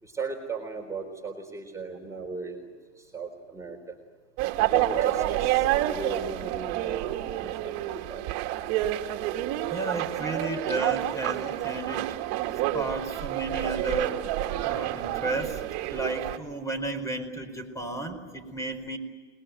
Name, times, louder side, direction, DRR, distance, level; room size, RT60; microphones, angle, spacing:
voice 1, 0.0-2.7 3.0-3.9 4.7-8.2 12.9-13.0, right 4 dB, 10° right, 0 dB, 3.9 m, -37 dB
sound 1, 4.4-16.4, right 14 dB, 45° right, 2.3 m, -29 dB
voice 2, 9.7-12.1 12.7-14.2 14.6-15.6 15.9-19.0, right 2 dB, 10° left, 8 dB, 4.5 m, -33 dB
29.5 x 21.0 x 9.2 m, 1.5 s
hypercardioid pair, 120°, 35 cm